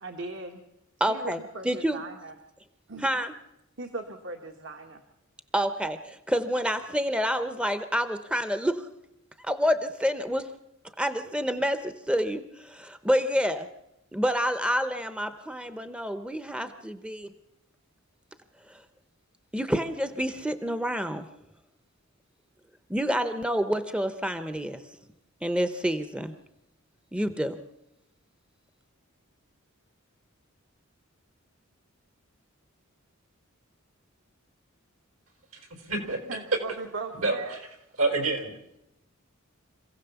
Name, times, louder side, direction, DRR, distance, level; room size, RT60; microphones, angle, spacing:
voice 1, 0.0-0.6 1.0-2.3 2.9-3.1 3.8-5.0 36.3-37.6, right 3 dB, 60° right, 4 dB, 1.4 m, -38 dB
voice 2, 1.0-1.4 1.6-2.0 3.0-3.3 5.5-8.9 9.4-10.5 11.0-13.7 14.1-17.3 18.7-18.8 19.5-21.3 22.9-24.8 25.4-26.3 27.1-27.6, equal, 5° right, 10 dB, 0.7 m, -28 dB
voice 3, 35.5-36.2 37.1-37.6 38.0-38.5, right 3 dB, 75° right, 5 dB, 4.1 m, -28 dB
26.5 x 16.0 x 7.0 m, 0.88 s
head